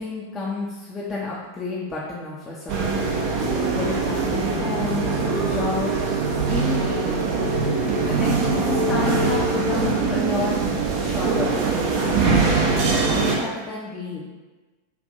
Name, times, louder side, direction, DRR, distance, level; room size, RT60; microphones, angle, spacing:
voice 1, 0.0-2.9 3.7-7.2 8.0-10.6 11.0-14.2, left 3 dB, 20° left, -6 dB, 0.6 m, -31 dB
sound 1, 2.7-13.4, right 4 dB, 45° right, 0.6 m, -22 dB
5.3 x 2.5 x 2.6 m, 1.3 s
figure-of-eight pair, 90°, 0 cm